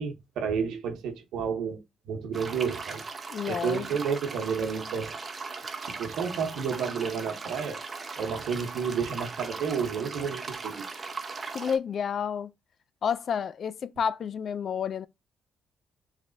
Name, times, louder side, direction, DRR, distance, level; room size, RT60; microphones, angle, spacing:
voice 1, 0.0-3.0 3.5-5.2 5.8-7.8 8.2-10.8, right 6 dB, 80° right, 0.9 m, -31 dB
sound 1, 2.3-11.8, right 4 dB, 35° right, 0.7 m, -38 dB
voice 2, 3.3-3.9 11.5-12.5 13.0-15.1, left 7 dB, 55° left, 0.3 m, -30 dB
3.3 x 3.2 x 3.8 m
cardioid pair, 90°, 0 cm